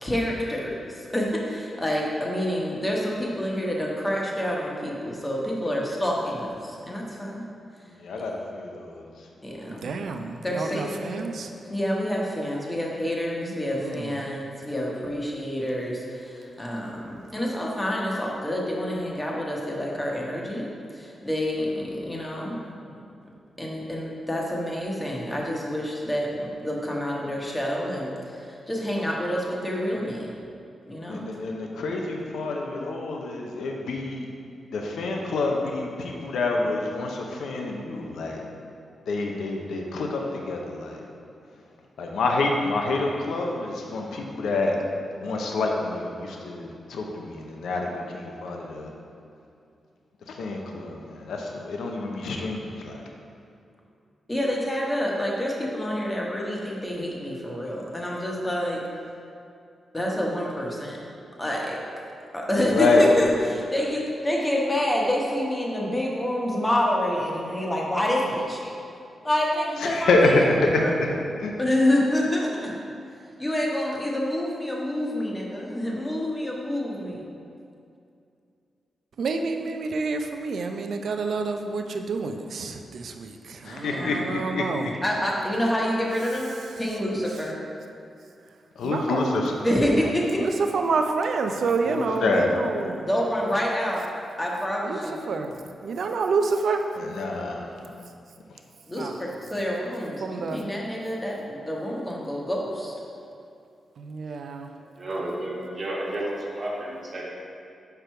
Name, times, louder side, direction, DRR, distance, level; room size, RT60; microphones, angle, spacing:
voice 1, 0.0-7.5 8.2-8.3 9.4-9.9 10.4-11.3 11.7-23.0 23.6-30.3 30.9-31.3 54.3-58.8 59.9-61.0 61.4-61.8 62.3-68.8 69.2-71.0 71.6-72.7 73.4-77.3 83.8-84.4 85.0-87.6 89.6-90.4 93.1-94.0 94.4-95.4 98.9-102.9, left 1 dB, 15° left, -2 dB, 1.0 m, -28 dB
voice 2, 8.0-9.0 31.1-34.3 34.7-38.4 39.1-41.0 42.0-44.8 45.2-48.9 50.3-53.0 62.6-63.1 69.8-71.1 71.4-71.5 83.6-84.7 88.8-89.5 91.9-92.5 97.0-97.8, left 3 dB, 90° left, 1 dB, 0.6 m, -27 dB
voice 3, 9.8-11.5 13.4-14.2 79.2-84.9 87.0-87.2 88.8-89.4 89.7-93.1 94.8-95.0 95.3-95.5 95.8-96.8 99.0-99.2 100.2-100.6 104.0-104.7, right 4 dB, 70° right, 5 dB, 0.4 m, -29 dB
voice 4, 105.0-107.2, right 1 dB, 50° right, -4 dB, 1.3 m, -31 dB
5.1 x 4.6 x 4.5 m, 2.5 s
cardioid pair, 95°, 0 cm